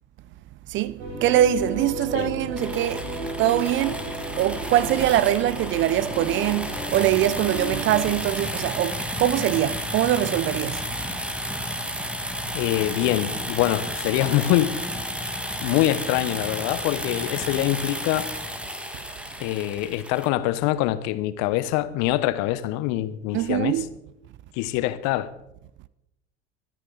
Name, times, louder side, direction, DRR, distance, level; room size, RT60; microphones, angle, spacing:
voice 1, 0.7-4.1 4.3-10.8 23.3-23.9, right 13 dB, 35° right, 0.5 m, -23 dB
sound 1, 1.0-8.1, right 1 dB, 70° right, 3.9 m, -34 dB
sound 2, 2.6-20.3, equal, 5° right, 1.7 m, -32 dB
voice 2, 12.5-14.8 15.6-18.3 19.4-23.8 24.5-25.3, left 14 dB, 50° left, 1.0 m, -24 dB
24.0 x 9.2 x 4.0 m
figure-of-eight pair, 75°, 35 cm